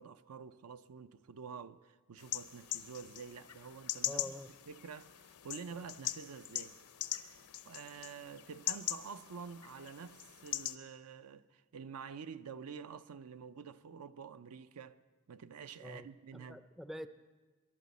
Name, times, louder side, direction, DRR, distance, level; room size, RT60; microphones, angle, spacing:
voice 1, 0.0-4.4 4.7-6.7 7.6-15.0 15.3-16.6, right 6 dB, 80° right, 0.5 m, -48 dB
sound 1, 2.2-10.7, left 13 dB, 85° left, 0.7 m, -42 dB
voice 2, 4.1-4.5 15.8-16.1 16.3-17.1, left 1 dB, ahead, 0.4 m, -45 dB
22.5 x 11.5 x 4.1 m
head